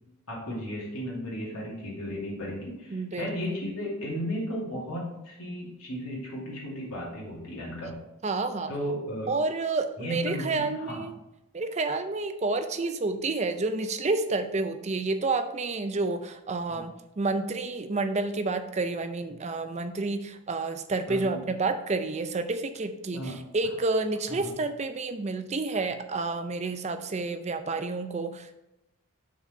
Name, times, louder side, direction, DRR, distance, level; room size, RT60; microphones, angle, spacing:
voice 1, 0.3-8.0 8.7-9.3 10.0-11.0 16.7-16.8 21.1-21.4 23.1-23.4 24.3-24.4, equal, 75° left, -4 dB, 2.6 m, -35 dB
voice 2, 2.9-3.6 8.2-8.7 9.3-11.1 11.5-28.5, right 3 dB, 30° right, 8 dB, 0.5 m, -29 dB
6.0 x 4.2 x 5.2 m, 0.91 s
head